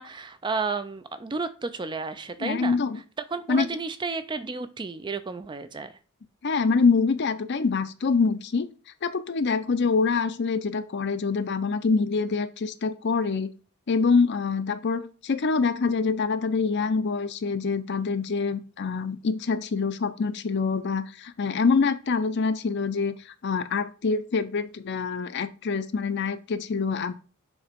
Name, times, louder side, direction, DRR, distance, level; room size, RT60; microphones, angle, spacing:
voice 1, 0.0-2.8 3.3-5.9, right 4 dB, 20° right, 11 dB, 0.4 m, -32 dB
voice 2, 2.4-3.0 3.5-3.7 6.4-8.7 9.0-13.5 13.9-23.2 23.4-27.1, left 4 dB, 50° left, 12 dB, 0.5 m, -25 dB
7.1 x 2.9 x 5.1 m, 0.35 s
head